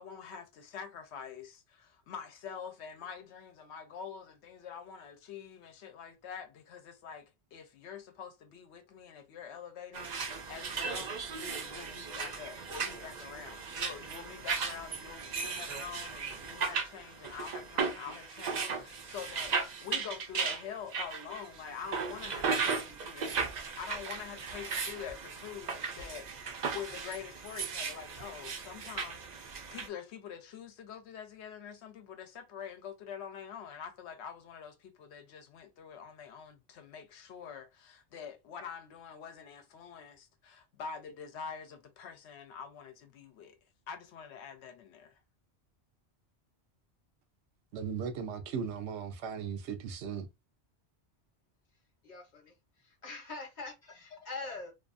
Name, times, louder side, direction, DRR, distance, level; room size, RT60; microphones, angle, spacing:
voice 1, 0.0-43.6 43.9-45.2, left 7 dB, 80° left, 0.9 m, -46 dB
sound 1, 9.9-29.9, right 5 dB, 55° right, 0.5 m, -36 dB
voice 2, 47.7-50.3, right 6 dB, 80° right, 0.9 m, -37 dB
voice 3, 52.0-52.5 53.0-54.7, left 3 dB, 45° left, 0.9 m, -43 dB
2.6 x 2.3 x 2.4 m
omnidirectional pair, 1.2 m